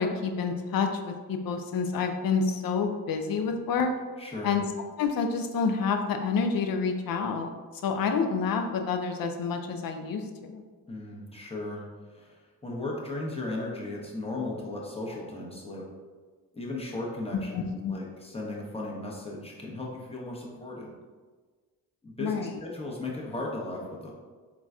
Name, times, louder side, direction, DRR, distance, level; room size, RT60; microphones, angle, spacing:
voice 1, 0.0-3.9 4.4-4.7 5.0-7.5 7.8-10.6 17.5-17.9 22.2-22.5, left 5 dB, 55° left, 6 dB, 0.5 m, -28 dB
voice 2, 4.2-4.5 10.9-11.8 12.1-15.8 16.5-20.9 22.0-24.1, left 2 dB, 15° left, -3 dB, 0.9 m, -36 dB
3.9 x 2.3 x 2.4 m, 1.4 s
supercardioid pair, 50°, 42 cm